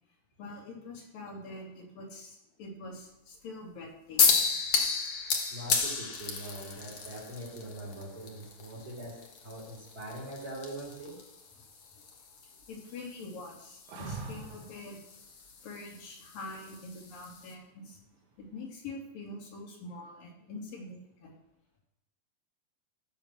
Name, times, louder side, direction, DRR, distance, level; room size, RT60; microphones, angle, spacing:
voice 1, 0.4-4.6 8.7-8.9 11.9-12.2 12.4-15.0 15.2-15.3 15.6-18.0 18.4-21.4, left 2 dB, 70° left, -1 dB, 4.2 m, -45 dB
sound 1, 4.2-17.5, left 5 dB, 50° left, 1.9 m, -34 dB
voice 2, 5.5-11.2, right 1 dB, 25° right, -2 dB, 3.2 m, -42 dB
sound 2, 13.9-14.8 17.4-18.0, right 3 dB, 90° right, 3.7 m, -41 dB
15.0 x 6.7 x 6.2 m, 0.81 s
omnidirectional pair, 4.2 m